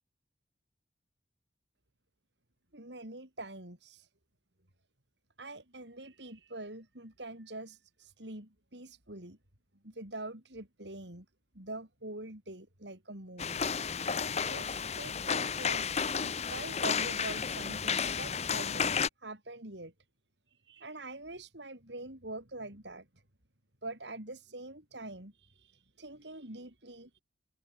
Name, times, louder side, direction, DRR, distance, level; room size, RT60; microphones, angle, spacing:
voice 1, 2.7-4.1 5.4-9.4 9.8-11.3 11.5-13.7 14.5-15.9 16.2-18.9 19.2-19.9 20.7-23.1 23.8-25.7 26.0-27.2, right 2 dB, 70° right, 6.6 m, -44 dB
sound 1, 13.4-19.1, left 6 dB, 35° left, 0.9 m, -32 dB
head